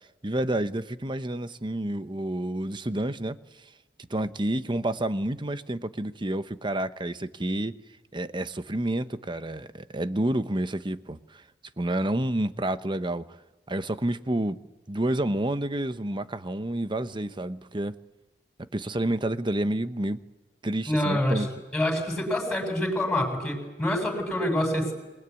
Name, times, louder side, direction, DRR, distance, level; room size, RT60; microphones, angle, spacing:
voice 1, 0.2-3.4 4.1-7.8 8.1-11.4 11.8-13.3 13.7-14.6 14.9-18.0 18.7-20.2 20.6-21.5, right 1 dB, 30° right, 1.0 m, -29 dB
voice 2, 20.9-21.5 21.7-24.9, left 1 dB, 5° left, 7.6 m, -26 dB
28.0 x 20.5 x 9.7 m
head